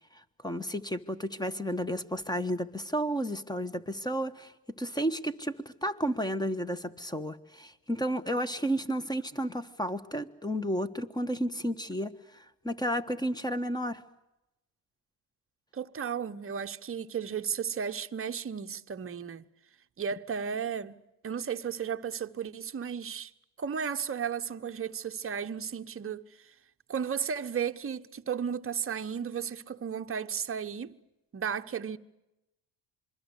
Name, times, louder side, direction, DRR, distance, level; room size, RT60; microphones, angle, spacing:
voice 1, 0.4-4.5 4.8-14.0, equal, 10° left, 1.5 m, -32 dB
voice 2, 15.7-19.5 20.0-21.0 21.2-23.3 23.6-26.5 26.9-31.0 31.3-32.0, right 7 dB, 30° right, 1.1 m, -34 dB
27.0 x 22.0 x 8.2 m
supercardioid pair, 90°, 47 cm